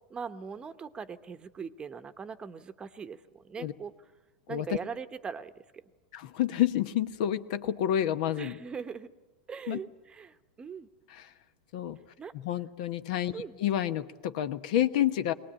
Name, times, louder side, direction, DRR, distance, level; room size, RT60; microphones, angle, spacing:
voice 1, 0.1-3.9 4.5-5.8 8.4-9.1 9.5-10.9 12.2-12.3 13.3-13.6, right 6 dB, 20° right, 11 dB, 1.0 m, -41 dB
voice 2, 6.1-8.6 9.7-9.8 11.1-11.3 11.7-12.0 12.3-15.3, left 11 dB, 65° left, 11 dB, 1.1 m, -29 dB
21.0 x 19.0 x 8.8 m, 1.2 s
hypercardioid pair, 110°, 4 cm